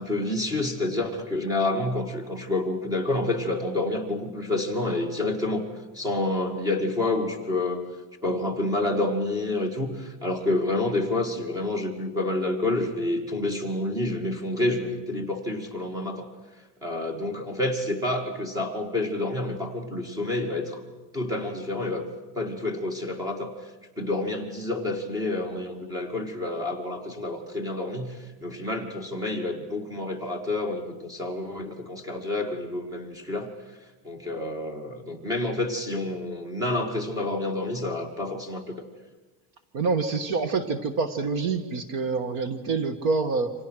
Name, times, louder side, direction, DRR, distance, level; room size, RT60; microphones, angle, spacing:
voice 1, 0.0-5.7 5.9-7.8 8.2-16.3 16.8-20.8 21.1-22.0 22.3-23.7 24.0-33.5 34.0-38.8, left 2 dB, 5° right, 5 dB, 2.1 m, -28 dB
voice 2, 39.7-43.5, right 4 dB, 45° right, 10 dB, 1.6 m, -26 dB
29.0 x 26.5 x 6.3 m, 1.3 s
cardioid pair, 180°, 49 cm